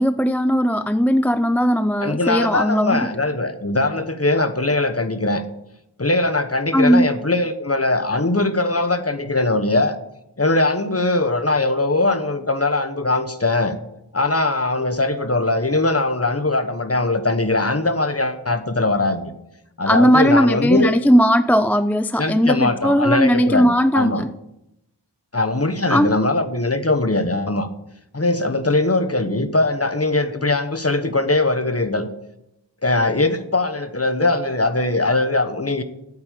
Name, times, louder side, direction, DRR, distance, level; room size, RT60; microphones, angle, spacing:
voice 1, 0.0-3.1 6.7-7.1 19.9-24.3 25.9-26.2, equal, 5° left, 0.4 m, -17 dB
voice 2, 2.0-5.4 6.0-10.0 10.4-13.8 14.1-19.3 19.8-20.9 22.2-24.3 25.3-27.7 28.1-32.1 32.8-35.8, left 2 dB, 35° left, 1.2 m, -21 dB
8.9 x 8.0 x 8.4 m
wide cardioid pair, 45°, 43 cm